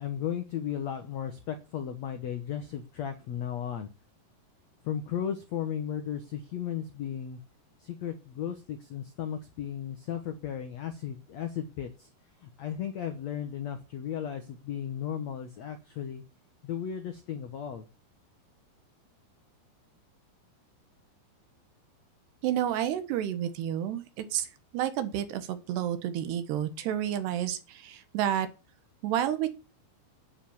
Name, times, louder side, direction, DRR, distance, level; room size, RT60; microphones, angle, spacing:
voice 1, 0.0-3.9 4.8-7.4 7.8-12.1 12.4-16.2 16.6-17.9, left 9 dB, 85° left, 7 dB, 1.5 m, -35 dB
voice 2, 22.4-24.5 24.7-28.5 29.0-29.5, right 11 dB, 75° right, 10 dB, 3.3 m, -30 dB
10.0 x 8.9 x 7.2 m, 0.31 s
omnidirectional pair, 5.0 m